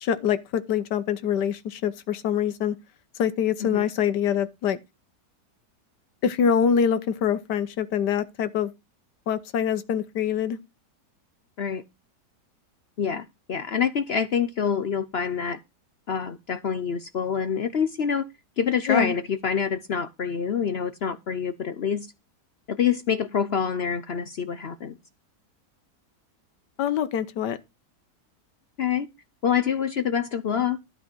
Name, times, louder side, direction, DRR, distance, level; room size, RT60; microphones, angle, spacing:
voice 1, 0.0-2.8 3.2-4.8 6.2-8.7 9.3-10.6 18.9-19.1 26.8-27.6, left 8 dB, 85° left, 1.5 m, -24 dB
voice 2, 13.0-15.6 16.1-18.2 18.6-22.1 22.7-25.0 28.8-29.1 29.4-30.8, left 7 dB, 60° left, 0.7 m, -26 dB
12.0 x 5.0 x 6.1 m
omnidirectional pair, 1.8 m